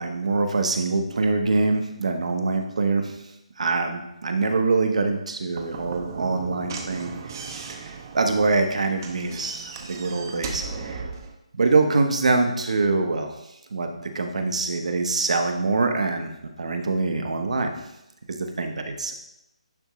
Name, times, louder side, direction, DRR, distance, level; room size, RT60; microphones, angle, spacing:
voice 1, 0.0-3.2 3.6-7.1 7.4-11.1 11.5-13.3 13.7-16.3 16.6-17.7 18.3-19.1, right 3 dB, 70° right, 5 dB, 1.0 m, -24 dB
Slam / Knock, 5.5-11.3, right 5 dB, 35° right, 0.7 m, -37 dB
10.5 x 3.6 x 3.2 m, 0.85 s
hypercardioid pair, 160°, 4 cm